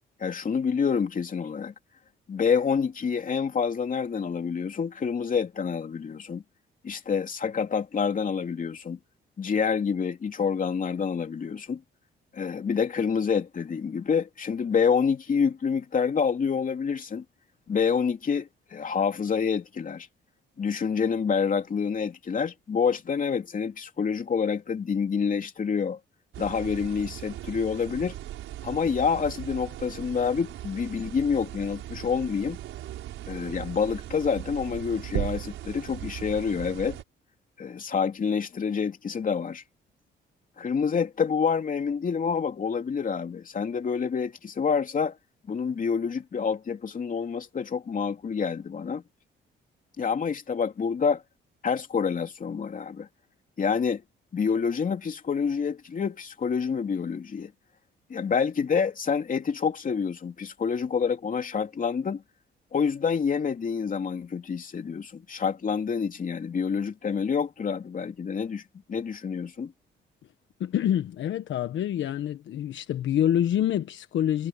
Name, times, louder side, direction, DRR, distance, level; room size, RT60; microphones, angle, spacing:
voice 1, 0.2-1.7 2.3-6.4 6.8-9.0 9.4-11.8 12.3-17.2 17.7-20.1 20.6-26.0 26.4-28.2 28.6-32.6 33.3-37.0 37.6-39.6 40.6-45.2 45.5-49.0 50.0-51.2 51.6-53.1 53.6-54.0 54.3-57.5 58.1-62.2 62.7-68.6 68.9-69.7, left 6 dB, 40° left, 3.0 m, -27 dB
sound 1, 26.3-37.0, right 13 dB, 85° right, 5.4 m, -38 dB
voice 2, 70.6-74.5, left 10 dB, 70° left, 1.3 m, -26 dB
cardioid pair, 90°, 20 cm